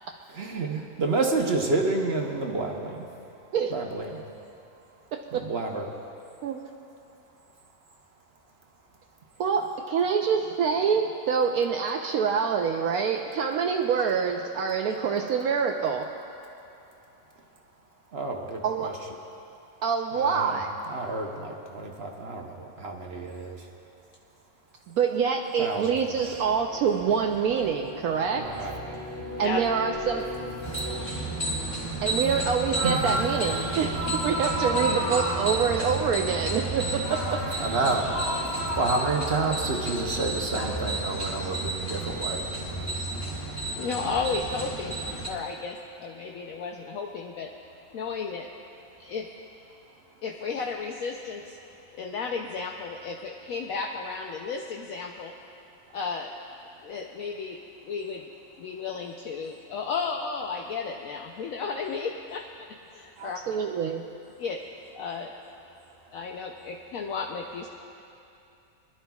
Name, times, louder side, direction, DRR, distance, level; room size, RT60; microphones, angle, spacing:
voice 1, 0.3-3.1 3.7-4.2 5.3-5.9 18.1-19.0 20.2-20.6 20.9-23.7 25.6-26.4 28.4-28.8 30.6-30.9 32.8-33.2 37.6-38.3 38.7-42.4, right 3 dB, 45° right, 1 dB, 1.1 m, -29 dB
voice 2, 5.1-5.5 6.4-6.6 9.4-16.1 18.6-18.9 19.8-20.7 24.9-28.5 29.4-30.3 32.0-37.5 63.2-64.0, right 6 dB, 75° right, 2 dB, 1.1 m, -26 dB
sound 1, 26.1-35.0, left 1 dB, 20° right, 1.8 m, -39 dB
sound 2, 28.4-44.4, left 4 dB, 35° left, 2.5 m, -47 dB
sound 3, 30.6-45.3, right 1 dB, 10° left, 2.0 m, -31 dB
voice 3, 43.8-45.0 45.3-47.5 47.9-48.5 49.0-49.3 50.2-51.6 51.9-55.3 55.9-56.3 56.8-57.6 57.8-58.3 58.6-62.7 62.9-63.4 64.4-64.6 64.9-65.3 66.1-67.7, left 5 dB, 70° left, 2 dB, 1.0 m, -33 dB
25.5 x 11.5 x 2.3 m, 2.7 s
omnidirectional pair, 1.6 m